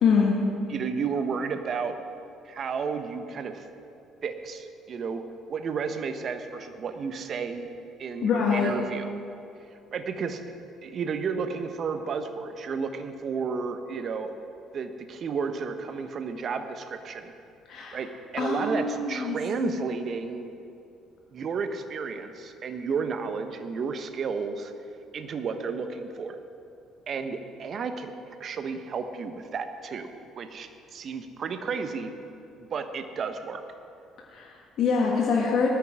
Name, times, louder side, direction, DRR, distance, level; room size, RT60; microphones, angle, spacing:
voice 1, 0.0-0.4 8.2-8.7 17.7-18.0 18.4-19.4 19.6-19.9 34.3-35.7, left 5 dB, 60° left, -2 dB, 1.9 m, -25 dB
voice 2, 0.7-1.9 2.4-3.6 4.2-5.2 5.5-7.7 8.0-9.1 9.9-10.4 10.8-14.3 14.7-17.3 17.9-18.1 18.3-20.5 21.3-24.7 25.1-26.4 27.1-28.1 28.4-32.1 32.7-33.6, right 5 dB, 50° right, 8 dB, 1.2 m, -32 dB
19.5 x 13.5 x 3.8 m, 2.6 s
hypercardioid pair, 50°, 0 cm